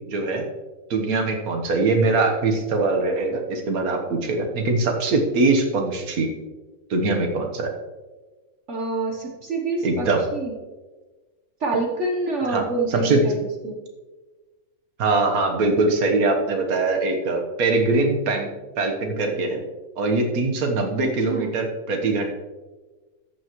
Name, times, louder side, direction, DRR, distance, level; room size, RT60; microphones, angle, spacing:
voice 1, 0.1-0.4 0.9-6.3 6.9-7.7 9.8-10.2 12.5-13.2 15.0-18.5 18.8-19.6 20.0-22.3, right 3 dB, 70° right, 3 dB, 1.7 m, -22 dB
voice 2, 8.7-10.5 11.6-13.8 21.3-21.5, right 3 dB, 55° right, 0 dB, 1.4 m, -27 dB
14.0 x 8.4 x 3.1 m, 1.3 s
omnidirectional pair, 1.6 m